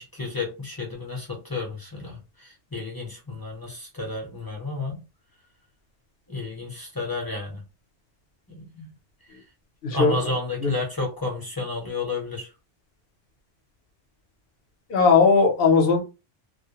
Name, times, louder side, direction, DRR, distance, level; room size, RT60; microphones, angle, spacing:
voice 1, 0.0-5.0 6.3-7.6 8.5-8.9 9.9-12.5, left 3 dB, 20° left, -2 dB, 0.7 m, -31 dB
voice 2, 9.8-10.2 10.6-10.7 14.9-16.0, left 4 dB, 55° left, 4 dB, 0.8 m, -18 dB
2.4 x 2.1 x 2.8 m, 0.28 s
omnidirectional pair, 1.3 m